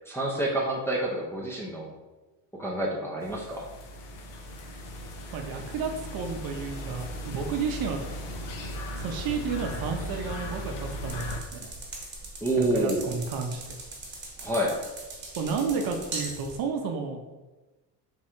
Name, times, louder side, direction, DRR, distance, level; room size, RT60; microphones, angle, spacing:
voice 1, 0.1-1.9 2.5-3.7 12.4-13.1 14.4-14.8, right 1 dB, 5° left, -4 dB, 0.6 m, -28 dB
sound 1, 3.2-11.4, equal, 65° left, 0.9 m, -37 dB
voice 2, 5.3-8.0 8.9-11.7 12.6-13.7 15.4-17.2, right 5 dB, 50° right, 4 dB, 0.7 m, -32 dB
sound 2, 11.0-16.6, right 2 dB, 25° right, 1.1 m, -40 dB
3.7 x 3.0 x 4.4 m, 1.1 s
cardioid pair, 130°, 45 cm